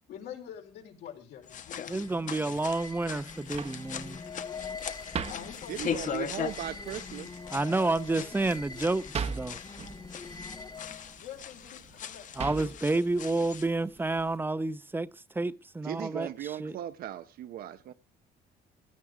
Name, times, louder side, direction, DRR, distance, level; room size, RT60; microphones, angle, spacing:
voice 1, 0.1-3.1 5.3-6.1 11.2-12.9, left 9 dB, 80° left, 4.2 m, -47 dB
sound 1, 1.4-13.7, left 8 dB, 50° left, 1.0 m, -40 dB
sound 2, 1.4-11.2, left 4 dB, 25° left, 0.8 m, -45 dB
voice 2, 1.9-4.2 7.5-9.0 9.4-9.5 12.4-15.1 15.4-16.3 16.6-16.8, right 2 dB, 10° right, 0.7 m, -29 dB
sound 3, 3.2-14.4, right 6 dB, 40° right, 1.0 m, -43 dB
voice 3, 5.7-7.5 15.8-17.9, right 11 dB, 60° right, 0.8 m, -38 dB
16.0 x 11.0 x 4.8 m
cardioid pair, 110°, 17 cm